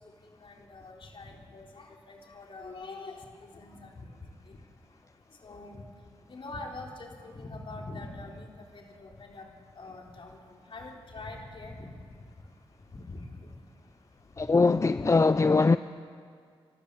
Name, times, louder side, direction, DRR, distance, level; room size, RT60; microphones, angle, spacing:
voice 1, 0.4-3.9 4.5-4.6 5.4-5.8 6.3-8.5 8.7-9.5 9.8-11.9 13.1-13.2 14.9-15.0, left 2 dB, 60° left, 3.8 m, -44 dB
voice 2, 14.4-15.8, left 3 dB, 30° left, 0.5 m, -21 dB
28.0 x 13.0 x 8.4 m
cardioid pair, 55°, 10 cm